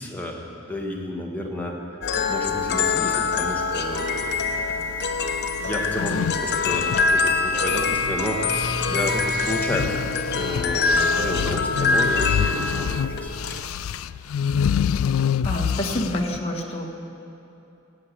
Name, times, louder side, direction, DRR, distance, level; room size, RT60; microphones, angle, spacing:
voice 1, 0.0-4.5 5.6-9.9 10.3-13.6, left 1 dB, 10° left, -1 dB, 1.7 m, -31 dB
sound 1, 2.0-13.6, left 4 dB, 55° left, 0.9 m, -24 dB
sound 2, 5.8-8.2 8.5-16.4, left 8 dB, 75° left, 0.3 m, -27 dB
sound 3, 11.2-12.4 15.7-15.9, right 1 dB, 60° right, 3.7 m, -45 dB
voice 2, 15.5-16.9, left 1 dB, 30° left, -1 dB, 1.8 m, -27 dB
17.0 x 8.7 x 8.3 m, 2.8 s
head